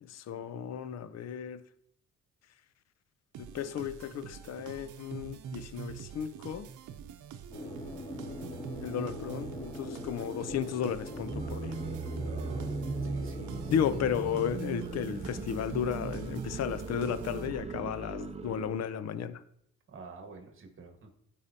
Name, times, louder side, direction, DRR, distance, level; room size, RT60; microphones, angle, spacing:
voice 1, 0.0-1.6 3.4-6.7 8.8-11.8 13.7-19.4, left 8 dB, 60° left, 0.6 m, -34 dB
sound 1, 3.3-17.9, right 8 dB, 80° right, 0.7 m, -45 dB
sound 2, 7.5-15.9, left 1 dB, 15° left, 2.7 m, -43 dB
sound 3, 11.1-18.8, right 4 dB, 20° right, 0.6 m, -38 dB
voice 2, 12.3-12.7 13.0-13.7 19.9-21.1, right 4 dB, 45° right, 1.5 m, -49 dB
14.0 x 4.9 x 2.8 m
cardioid pair, 90°, 30 cm